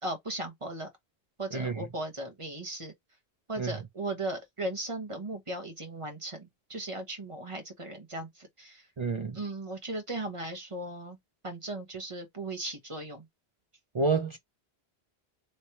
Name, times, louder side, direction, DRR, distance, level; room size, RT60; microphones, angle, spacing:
voice 1, 0.0-0.9 1.4-2.9 3.5-8.8 9.3-11.2 11.4-13.2, right 2 dB, 30° right, 1.2 m, -37 dB
voice 2, 1.5-1.9 3.6-3.7 9.0-9.4 13.9-14.4, right 4 dB, 50° right, 0.3 m, -29 dB
3.3 x 3.1 x 2.9 m
omnidirectional pair, 1.1 m